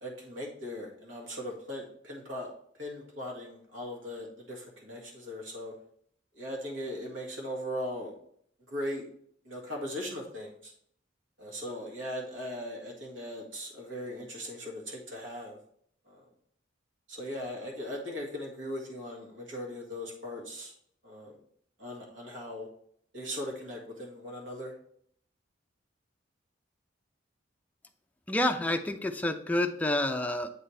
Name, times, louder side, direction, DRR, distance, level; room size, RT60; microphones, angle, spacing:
voice 1, 0.0-2.5 2.8-5.7 6.4-8.1 8.7-9.1 9.5-10.7 11.4-15.6 16.1-16.2 17.1-20.7 21.0-21.3 21.8-22.7 23.1-24.7, left 1 dB, 75° right, 0 dB, 1.8 m, -39 dB
voice 2, 28.3-30.5, left 1 dB, 10° left, 5 dB, 0.4 m, -28 dB
7.8 x 4.3 x 3.2 m, 0.65 s
head